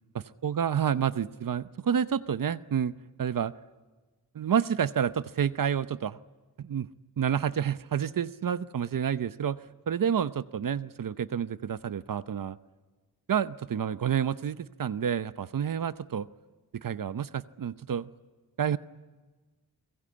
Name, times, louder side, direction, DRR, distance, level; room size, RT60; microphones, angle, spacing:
voice 1, 0.1-2.9 3.2-3.5 4.3-6.2 6.6-6.9 7.2-12.6 13.3-16.3 16.7-18.1 18.6-18.8, right 8 dB, 65° right, 14 dB, 0.8 m, -29 dB
29.5 x 22.5 x 8.6 m, 1.3 s
wide cardioid pair, 95°, 35 cm